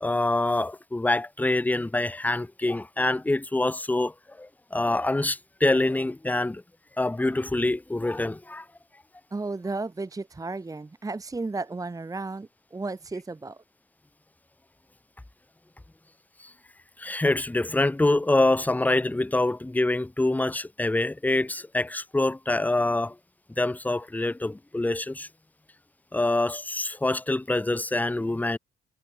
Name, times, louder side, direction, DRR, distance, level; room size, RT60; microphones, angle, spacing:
voice 1, 0.0-6.6 7.0-8.6 17.0-23.1 23.6-25.3 26.1-28.6, left 2 dB, 10° left, 0.8 m, -25 dB
voice 2, 9.3-13.6, right 3 dB, 15° right, 1.0 m, -34 dB
cardioid pair, 90°, 20 cm